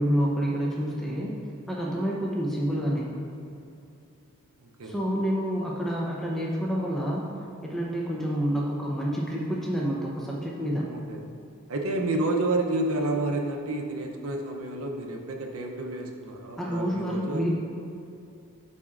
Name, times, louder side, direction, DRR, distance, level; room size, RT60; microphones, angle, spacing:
voice 1, 0.0-1.3 1.7-3.1 4.8-7.3 7.6-10.9 16.6-17.5, equal, ahead, -4 dB, 0.6 m, -28 dB
voice 2, 4.6-4.9 10.9-11.2 11.7-17.5, right 2 dB, 80° right, 2 dB, 0.7 m, -30 dB
12.0 x 4.2 x 2.4 m, 2.6 s
head